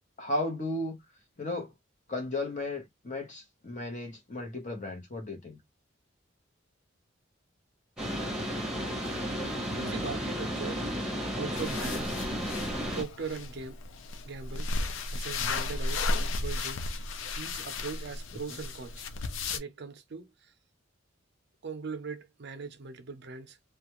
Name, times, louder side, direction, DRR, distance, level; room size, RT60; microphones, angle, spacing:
voice 1, 0.2-1.0 1.4-1.7 2.1-5.6 12.5-12.8 15.4-15.5 16.2-16.3, left 2 dB, 40° left, 0.9 m, -35 dB
sound 1, 8.0-13.0, equal, 5° right, 0.9 m, -33 dB
voice 2, 9.7-10.9 11.3-12.2 12.9-13.8 14.2-14.7 15.1-16.1 16.4-16.9 17.3-19.0 19.5-20.5 21.6-23.6, right 4 dB, 55° right, 0.5 m, -40 dB
sound 2, 11.5-19.6, left 3 dB, 75° left, 0.4 m, -34 dB
2.4 x 2.2 x 2.9 m
head